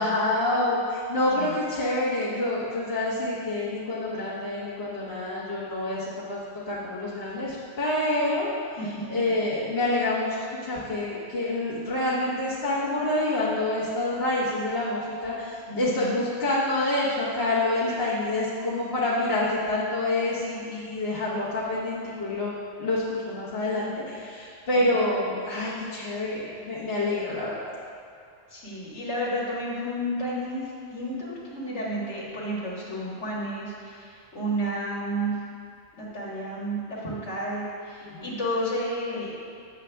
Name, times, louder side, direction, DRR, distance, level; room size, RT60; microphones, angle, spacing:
voice 1, 0.0-8.5 9.1-27.6 38.0-38.3, left 2 dB, 60° left, -8 dB, 1.5 m, -27 dB
voice 2, 15.7-16.2 28.5-35.4 36.0-39.4, equal, 80° left, -6 dB, 2.0 m, -31 dB
8.1 x 7.5 x 3.4 m, 2.5 s
omnidirectional pair, 1.2 m